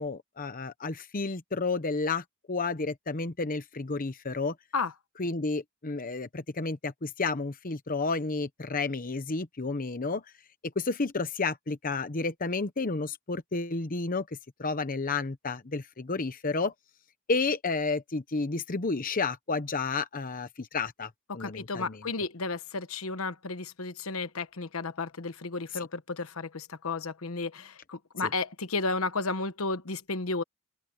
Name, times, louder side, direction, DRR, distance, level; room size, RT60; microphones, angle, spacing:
voice 1, 0.0-4.5 5.2-10.2 10.8-14.3 14.6-16.7 17.3-22.0, left 3 dB, 40° left, 0.9 m, -31 dB
voice 2, 21.3-30.4, left 3 dB, 85° left, 1.2 m, -33 dB
open air
head